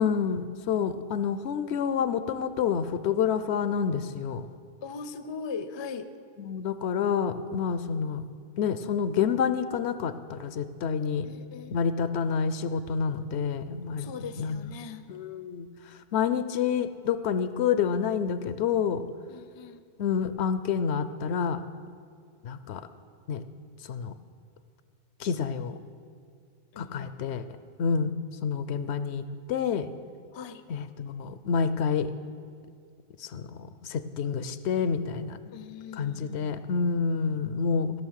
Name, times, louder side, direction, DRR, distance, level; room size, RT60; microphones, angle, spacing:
voice 1, 0.0-4.4 6.4-8.2 8.6-11.3 11.7-14.1 14.4-14.7 15.1-15.7 16.1-19.0 20.0-21.6 22.4-22.8 23.3-23.4 23.9-24.1 25.2-25.7 26.8-27.4 27.8-28.1 28.4-29.9 30.7-32.1 33.2-35.4 36.0-37.9, left 6 dB, 85° left, 12 dB, 0.9 m, -28 dB
voice 2, 4.8-6.1 11.2-11.8 14.0-15.0 19.3-19.8 26.7-27.1 30.3-30.6 35.5-36.6, left 5 dB, 40° left, 11 dB, 0.4 m, -40 dB
15.5 x 6.2 x 6.4 m, 2.2 s
omnidirectional pair, 1.1 m